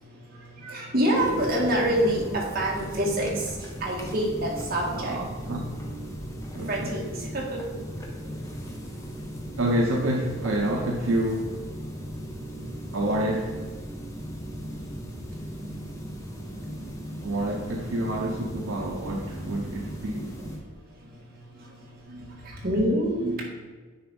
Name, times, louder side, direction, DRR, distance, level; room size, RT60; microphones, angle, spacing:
voice 1, 0.0-5.2 6.7-7.8 17.3-17.4 17.7-17.8 19.9-20.1 20.5-23.4, right 1 dB, 50° right, 2.0 m, -28 dB
sound 1, 1.1-20.6, equal, 15° left, 1.1 m, -37 dB
voice 2, 5.0-5.7 6.5-7.0 9.6-11.5 12.9-13.5 17.2-20.3, right 1 dB, 75° right, 0.8 m, -28 dB
9.5 x 3.4 x 5.4 m
head